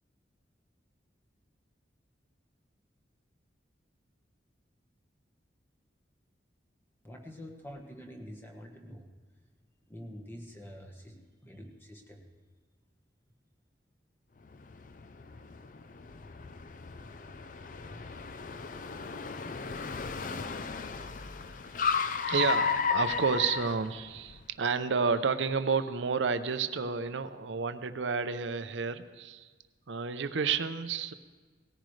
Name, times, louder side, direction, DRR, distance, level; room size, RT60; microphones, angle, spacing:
voice 1, 7.0-9.1 9.9-12.3, equal, 10° left, 1 dB, 1.3 m, -46 dB
Car, 14.5-24.4, left 5 dB, 45° left, 0.5 m, -34 dB
voice 2, 22.3-29.5 29.9-31.1, right 5 dB, 80° right, 10 dB, 0.6 m, -30 dB
18.0 x 14.0 x 3.3 m, 1.4 s
head